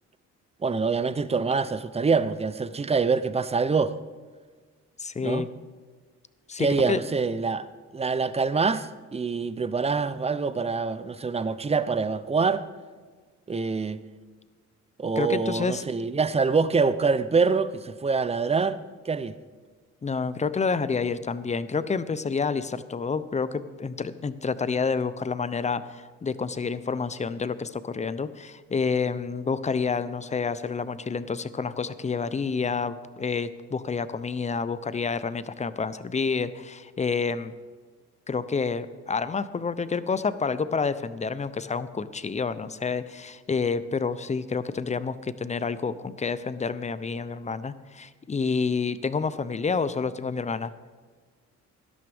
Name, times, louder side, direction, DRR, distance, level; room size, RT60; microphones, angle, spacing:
voice 1, 0.6-3.9 5.2-5.5 6.6-7.7 7.9-12.6 13.5-14.0 15.0-19.4, right 4 dB, 20° right, 0.6 m, -25 dB
voice 2, 5.0-5.5 6.5-7.0 15.2-15.8 20.0-37.5 38.3-50.7, left 5 dB, 25° left, 0.6 m, -29 dB
17.5 x 12.0 x 3.5 m
cardioid pair, 90°, 30 cm